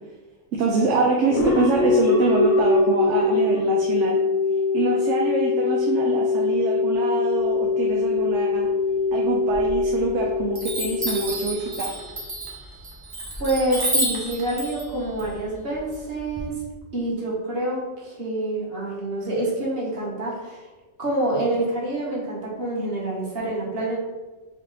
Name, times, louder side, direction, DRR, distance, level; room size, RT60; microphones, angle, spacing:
voice 1, 0.5-4.2 4.7-8.7 9.1-11.9, right 4 dB, 70° right, -1 dB, 0.9 m, -25 dB
sound 1, 1.3-12.0, left 4 dB, 85° left, 1.2 m, -22 dB
Chime, 9.5-10.2 10.5-16.4, right 1 dB, 25° right, 0.5 m, -30 dB
voice 2, 13.4-16.5 16.9-20.7 21.0-24.0, right 1 dB, 50° right, -5 dB, 1.4 m, -27 dB
3.5 x 3.2 x 3.8 m, 1.2 s
omnidirectional pair, 1.3 m